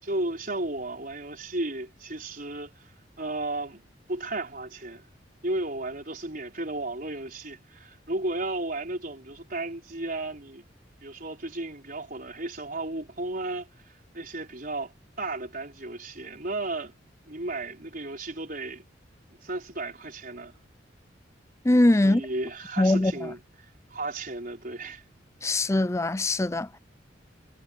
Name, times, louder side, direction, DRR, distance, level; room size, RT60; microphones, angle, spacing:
voice 1, 0.0-3.8 4.1-5.1 5.4-10.6 11.0-16.9 17.3-18.8 19.3-20.5 22.0-23.4 23.9-25.0, right 2 dB, 50° right, 4.6 m, -34 dB
voice 2, 21.6-22.2 22.8-23.3 25.4-26.8, left 1 dB, 15° left, 0.5 m, -22 dB
head